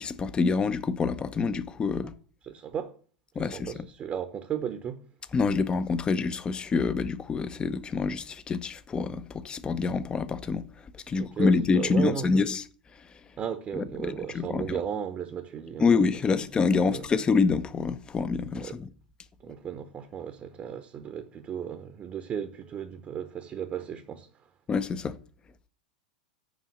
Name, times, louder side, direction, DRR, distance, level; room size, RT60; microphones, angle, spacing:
voice 1, 0.0-2.1 3.4-3.7 5.3-10.6 11.1-12.6 13.8-14.8 15.8-18.9 24.7-25.2, left 4 dB, 20° left, 0.7 m, -26 dB
voice 2, 2.4-2.9 3.4-5.0 11.1-12.4 13.4-15.9 16.4-16.5 16.8-17.1 18.6-18.8 19.4-24.3, right 8 dB, 30° right, 0.9 m, -35 dB
7.2 x 5.5 x 7.1 m
figure-of-eight pair, 90°, 4 cm